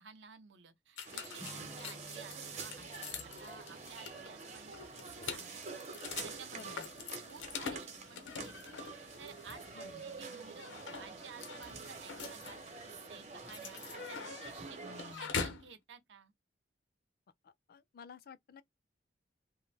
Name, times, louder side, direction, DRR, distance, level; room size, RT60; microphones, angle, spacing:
voice 1, 0.0-5.8 6.2-6.9 7.2-10.7 11.0-12.6 12.8-16.3, right 6 dB, 75° right, 0.8 m, -54 dB
sound 1, 1.0-15.7, left 5 dB, 90° left, 0.7 m, -45 dB
sound 2, 1.0-15.1, right 4 dB, 40° right, 0.8 m, -47 dB
Strum, 1.4-6.7, left 1 dB, 5° right, 0.5 m, -57 dB
voice 2, 6.5-6.9 9.7-10.0 14.8-15.5 17.4-18.6, left 5 dB, 55° left, 0.4 m, -53 dB
2.6 x 2.1 x 3.2 m
head